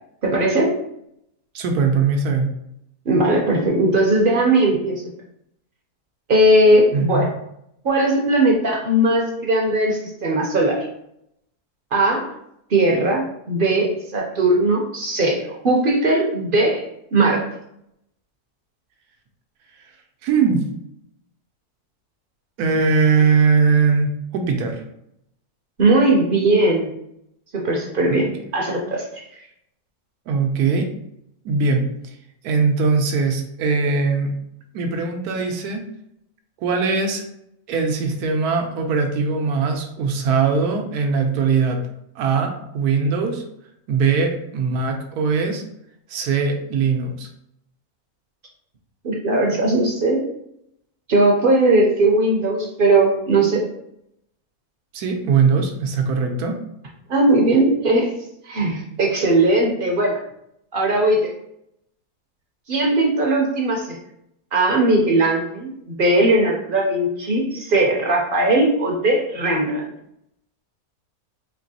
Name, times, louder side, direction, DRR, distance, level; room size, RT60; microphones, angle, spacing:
voice 1, 0.2-0.7 3.1-5.0 6.3-7.3 7.8-10.9 11.9-12.3 12.7-16.8 17.1-17.5 25.8-26.9 27.5-29.2 49.0-50.2 51.1-53.6 57.1-58.1 58.5-60.2 60.7-61.3 62.7-64.0 64.5-69.8, right 2 dB, 50° right, -1 dB, 0.6 m, -18 dB
voice 2, 1.5-2.5 6.9-7.3 20.2-20.6 22.6-24.8 28.1-28.2 30.3-30.9 31.4-32.1 32.4-34.3 34.7-35.8 36.6-37.2 37.7-41.8 42.2-43.4 43.9-45.6 46.1-47.3 54.9-56.6, right 5 dB, 85° right, 4 dB, 1.2 m, -20 dB
4.4 x 2.9 x 2.7 m, 0.76 s
omnidirectional pair, 1.6 m